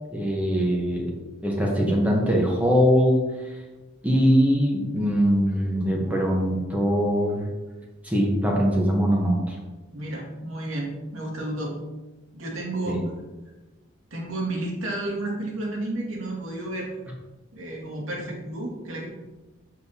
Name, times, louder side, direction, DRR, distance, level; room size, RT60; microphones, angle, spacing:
voice 1, 0.1-1.1 1.4-3.2 4.0-7.5 8.0-9.6 12.9-13.0, equal, 5° right, -2 dB, 1.0 m, -22 dB
voice 2, 9.9-11.7 12.3-13.0 14.1-16.9 17.5-19.1, right 1 dB, 85° right, -3 dB, 2.1 m, -31 dB
7.7 x 6.4 x 2.8 m, 1.1 s
head